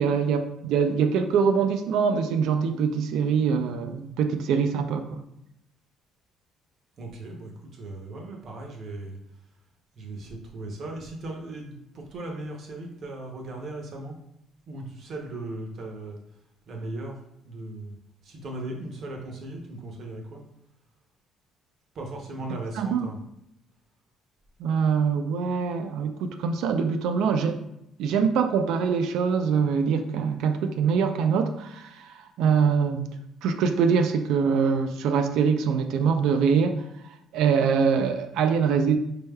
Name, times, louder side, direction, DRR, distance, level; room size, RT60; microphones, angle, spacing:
voice 1, 0.0-5.2 22.8-23.1 24.6-27.6 28.0-33.1 33.4-36.8 37.3-39.0, right 6 dB, 70° right, 7 dB, 0.3 m, -24 dB
voice 2, 7.0-9.2 9.9-14.2 14.7-16.2 16.7-17.2 17.4-17.9 18.2-20.4 21.9-23.2, right 2 dB, 40° right, 1 dB, 0.7 m, -37 dB
4.3 x 3.3 x 2.2 m, 0.80 s
cardioid pair, 165°, 0 cm